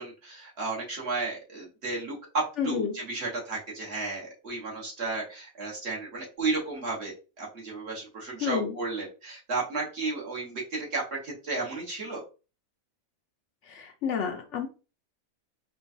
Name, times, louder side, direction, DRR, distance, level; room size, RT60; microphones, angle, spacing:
voice 1, 0.0-12.2, right 3 dB, 50° right, -3 dB, 1.4 m, -33 dB
voice 2, 2.6-3.0 8.4-8.7 13.6-14.7, left 7 dB, 65° left, 5 dB, 0.8 m, -30 dB
4.4 x 2.3 x 2.5 m, 0.33 s
omnidirectional pair, 1.5 m